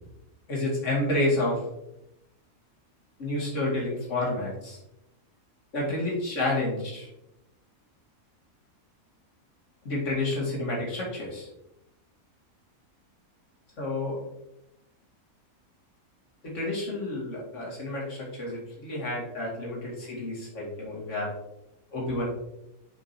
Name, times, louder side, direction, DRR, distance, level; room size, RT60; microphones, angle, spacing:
voice 1, 0.5-1.6 3.2-4.8 5.7-7.1 9.8-11.5 13.8-14.2 16.4-21.3 21.9-22.3, left 2 dB, 55° left, -4 dB, 2.5 m, -30 dB
6.9 x 5.4 x 2.8 m, 0.85 s
omnidirectional pair, 1.5 m